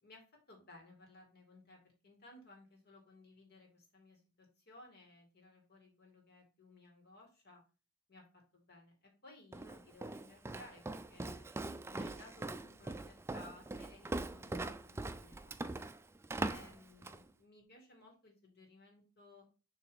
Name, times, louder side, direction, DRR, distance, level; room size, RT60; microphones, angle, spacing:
voice 1, 0.0-7.6 8.1-11.5 11.9-15.9 16.3-19.5, left 2 dB, 50° left, 1 dB, 2.4 m, -59 dB
Walk footsteps, 9.5-17.3, right 2 dB, 10° right, 0.3 m, -42 dB
6.9 x 3.3 x 5.1 m, 0.33 s
head